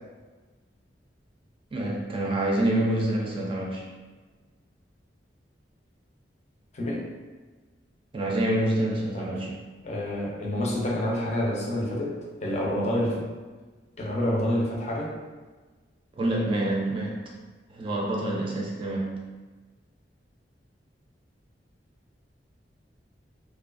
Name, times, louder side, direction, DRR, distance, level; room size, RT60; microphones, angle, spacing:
voice 1, 1.7-3.8 8.1-9.5 16.2-17.2 17.7-19.2, right 1 dB, 30° right, -2 dB, 0.3 m, -27 dB
voice 2, 6.7-7.1 9.1-9.3 9.8-13.3 14.0-15.2, left 1 dB, 40° left, -3 dB, 0.5 m, -28 dB
2.4 x 2.2 x 2.4 m, 1.3 s
head